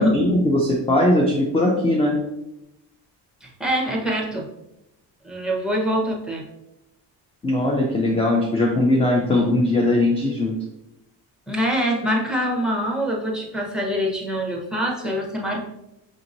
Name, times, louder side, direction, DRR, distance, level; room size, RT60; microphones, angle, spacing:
voice 1, 0.0-2.2 7.4-10.6, left 1 dB, 15° left, 0 dB, 0.5 m, -20 dB
voice 2, 3.4-4.5 5.2-6.4 11.5-15.6, equal, ahead, -1 dB, 1.0 m, -24 dB
6.1 x 2.8 x 2.6 m, 0.88 s
cardioid pair, 95°, 43 cm